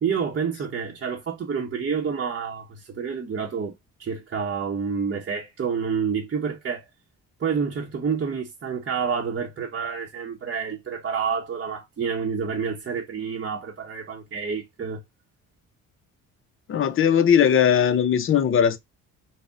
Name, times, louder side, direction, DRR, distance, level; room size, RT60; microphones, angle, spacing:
voice 1, 0.0-3.7 4.0-6.9 7.4-15.0, right 6 dB, 35° right, 0.8 m, -28 dB
voice 2, 16.7-18.8, left 8 dB, 35° left, 0.6 m, -19 dB
3.6 x 2.1 x 3.6 m
cardioid pair, 80°, 34 cm